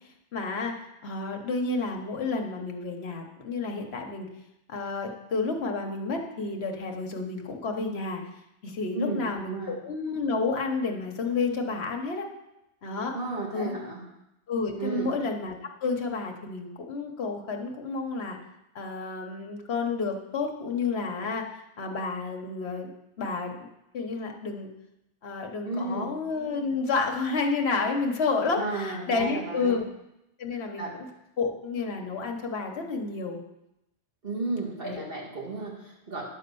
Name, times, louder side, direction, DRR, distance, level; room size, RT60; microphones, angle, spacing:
voice 1, 0.3-0.7 1.0-4.3 4.7-8.2 8.6-12.3 12.8-13.1 13.5-13.8 14.5-18.4 18.7-21.5 21.8-22.9 23.2-23.7 23.9-24.7 25.2-29.8 30.4-31.1 31.4-33.4 34.8-35.0, left 4 dB, 65° left, 3 dB, 1.3 m, -30 dB
voice 2, 8.9-9.8 13.1-14.0 14.8-15.1 25.6-26.1 28.6-29.8 30.5-31.0 34.2-36.2, right 3 dB, 50° right, -4 dB, 2.3 m, -33 dB
10.5 x 4.2 x 6.9 m, 0.88 s
omnidirectional pair, 1.2 m